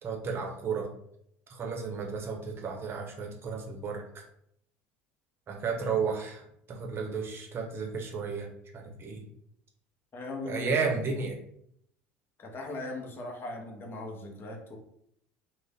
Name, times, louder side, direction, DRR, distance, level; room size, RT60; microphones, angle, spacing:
voice 1, 0.0-0.9 1.5-4.2 5.5-8.5 8.7-9.2 10.5-11.4, right 5 dB, 40° right, 1 dB, 0.8 m, -33 dB
voice 2, 10.1-10.7 12.4-14.8, left 2 dB, 35° left, 1 dB, 0.8 m, -39 dB
2.5 x 2.1 x 3.5 m, 0.71 s
hypercardioid pair, 80°, 6 cm